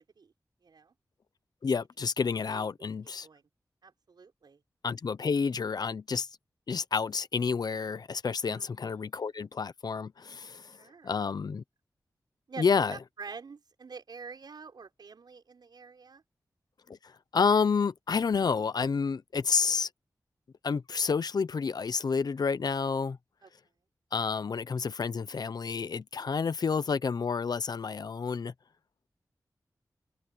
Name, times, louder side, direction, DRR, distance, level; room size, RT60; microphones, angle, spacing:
voice 1, 0.6-0.9 2.5-3.4 3.8-4.6 8.4-9.1 10.8-11.2 12.5-16.2 23.4-23.5, right 5 dB, 75° right, 6.3 m, -47 dB
voice 2, 1.6-3.3 4.8-6.3 6.7-10.8 11.0-11.6 12.6-13.0 16.9-17.0 17.3-19.9 20.6-23.2 24.1-28.5, left 5 dB, 65° left, 0.8 m, -29 dB
wide cardioid pair, 115°, 7 cm